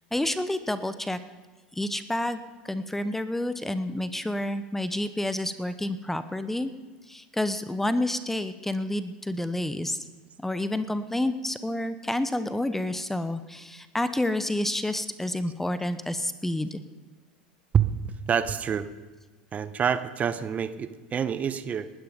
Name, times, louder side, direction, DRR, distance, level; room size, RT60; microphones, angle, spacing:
voice 1, 0.1-1.2 1.7-2.4 2.6-6.7 7.1-10.0 10.4-16.8, left 1 dB, 5° left, 12 dB, 0.9 m, -29 dB
voice 2, 18.3-18.9 19.5-21.9, right 8 dB, 30° right, 13 dB, 1.0 m, -26 dB
19.0 x 13.0 x 5.2 m, 1.2 s
hypercardioid pair, 85°, 5 cm